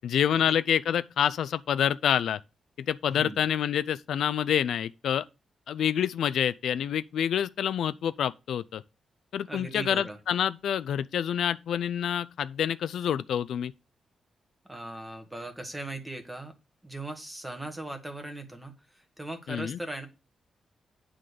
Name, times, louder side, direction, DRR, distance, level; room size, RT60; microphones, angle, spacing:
voice 1, 0.0-2.4 2.9-5.2 5.7-8.8 9.3-13.7 19.5-19.8, left 9 dB, 75° left, 0.3 m, -27 dB
voice 2, 3.1-3.4 9.5-10.2 14.7-16.5 16.8-20.1, right 2 dB, 10° right, 1.2 m, -39 dB
9.4 x 3.8 x 6.6 m
wide cardioid pair, 175°, 0 cm